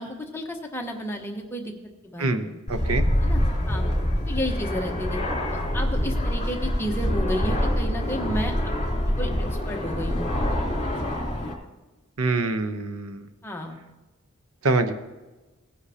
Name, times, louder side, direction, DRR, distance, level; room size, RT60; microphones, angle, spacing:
voice 1, 0.0-1.7 2.0-2.5 3.2-3.8 4.3-5.2 5.5-8.8 9.0-10.3 13.4-13.8, equal, 10° left, 1 dB, 1.1 m, -32 dB
voice 2, 2.2-3.0 12.2-13.3 14.6-14.9, right 3 dB, 80° right, 9 dB, 0.8 m, -25 dB
Fixed-wing aircraft airplane, 2.7-11.5, left 1 dB, 35° left, 3.0 m, -25 dB
18.5 x 9.8 x 2.8 m, 1.1 s
head